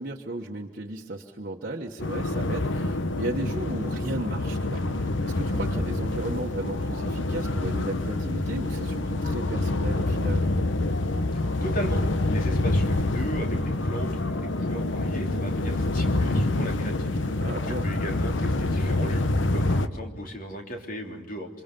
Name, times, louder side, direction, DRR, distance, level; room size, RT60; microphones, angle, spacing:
voice 1, 0.0-10.4 17.4-17.9, right 2 dB, 45° right, 0 dB, 1.4 m, -35 dB
sound 1, 2.0-19.9, left 2 dB, 65° left, 1.1 m, -26 dB
voice 2, 11.3-12.0 12.3-17.2 17.7-19.2 19.5-21.5, equal, 45° left, 2 dB, 3.4 m, -36 dB
28.0 x 26.0 x 5.3 m, 1.2 s
head